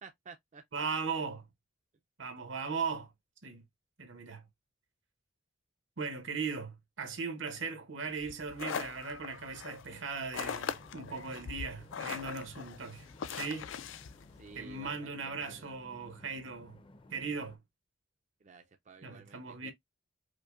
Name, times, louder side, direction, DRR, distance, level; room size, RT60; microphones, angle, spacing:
voice 1, 0.0-0.6 14.4-15.7 18.4-19.7, right 4 dB, 40° right, 0.4 m, -53 dB
voice 2, 0.7-1.5 2.2-3.1 3.4-3.6 4.0-4.5 6.0-13.7 14.5-16.8 17.1-17.6 19.0-19.7, right 5 dB, 80° right, 1.0 m, -38 dB
sound 1, 8.2-14.9, left 7 dB, 80° left, 0.4 m, -41 dB
sound 2, 10.7-17.6, left 1 dB, 25° left, 0.5 m, -57 dB
5.1 x 2.1 x 2.4 m
head